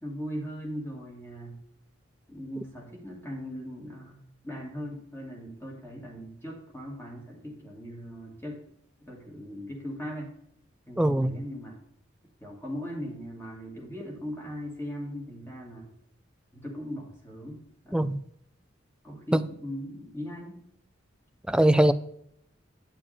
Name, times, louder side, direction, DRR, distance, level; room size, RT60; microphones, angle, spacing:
voice 1, 0.0-1.6 2.3-8.6 9.0-10.3 10.9-11.8 12.4-15.9 16.5-18.1 19.0-20.6, equal, 10° left, -1 dB, 2.3 m, -39 dB
voice 2, 11.0-11.4 17.9-18.2 19.3-19.4 21.5-21.9, right 1 dB, 5° right, 12 dB, 0.4 m, -21 dB
10.0 x 6.8 x 3.5 m, 0.71 s
head